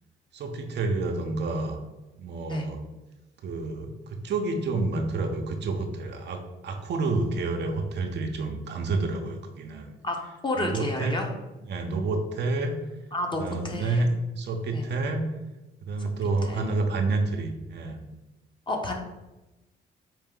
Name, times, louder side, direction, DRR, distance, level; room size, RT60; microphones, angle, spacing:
voice 1, 0.3-1.8 2.2-2.8 3.4-9.9 10.6-11.2 11.7-12.8 13.4-14.1 14.4-15.2 15.8-18.0, right 3 dB, 60° right, 4 dB, 0.6 m, -29 dB
voice 2, 10.4-11.3 13.1-14.1 14.7-14.9 16.5-16.8 18.7-19.0, left 2 dB, 25° left, 2 dB, 0.8 m, -31 dB
4.6 x 2.6 x 3.7 m, 1.0 s
cardioid pair, 90°, 20 cm